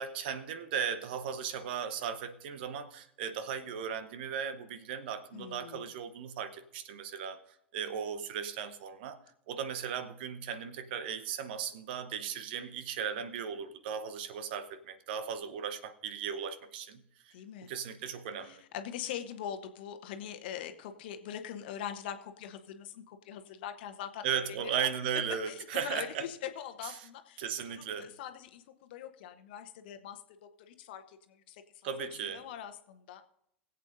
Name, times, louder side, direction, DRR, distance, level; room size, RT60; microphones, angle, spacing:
voice 1, 0.0-7.4 7.7-9.2 9.5-17.3 17.6-18.6 24.2-26.3 26.8-27.1 27.4-28.1 31.8-32.4, right 7 dB, 60° right, 1.0 m, -37 dB
voice 2, 5.3-5.9 17.3-17.7 18.4-24.5 25.5-31.9 32.2-33.2, left 9 dB, 60° left, 1.0 m, -43 dB
21.0 x 8.0 x 2.7 m
figure-of-eight pair, 80°, 6 cm